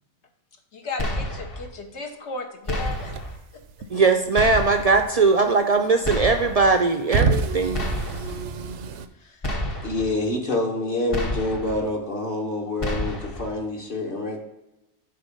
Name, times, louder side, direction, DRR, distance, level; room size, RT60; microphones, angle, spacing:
voice 1, 0.7-3.1 9.2-9.5, left 3 dB, 70° left, 4 dB, 1.4 m, -35 dB
sound 1, 1.0-1.7 2.7-3.4 4.4-5.1 6.0-6.7 7.7-8.4 9.4-10.1 11.1-11.8 12.8-13.5, left 1 dB, 30° left, 0.8 m, -29 dB
sound 2, 2.7-4.4 4.7-6.0 6.4-9.1, right 4 dB, 85° right, 0.9 m, -28 dB
voice 2, 3.9-7.9, right 4 dB, 50° right, 6 dB, 0.4 m, -20 dB
voice 3, 9.8-14.4, left 2 dB, 50° left, 0 dB, 1.4 m, -27 dB
6.8 x 4.4 x 5.2 m, 0.98 s
omnidirectional pair, 1.2 m